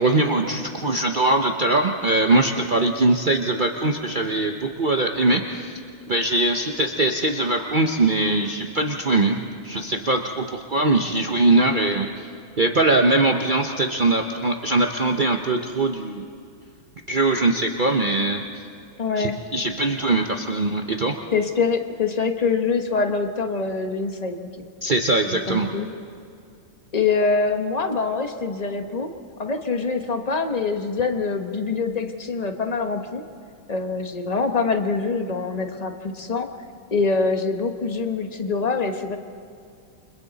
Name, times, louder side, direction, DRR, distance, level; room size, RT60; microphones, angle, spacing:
voice 1, 0.0-5.8 6.1-12.1 12.6-16.3 17.1-18.4 19.2-21.1 24.8-25.7, right 2 dB, 60° right, 3 dB, 0.5 m, -21 dB
voice 2, 19.0-19.4 21.3-24.6 25.3-25.9 26.9-29.1 29.4-33.2 33.7-36.5 36.9-39.2, left 4 dB, 30° left, 5 dB, 0.8 m, -24 dB
29.0 x 26.0 x 4.1 m, 2.4 s
omnidirectional pair, 2.3 m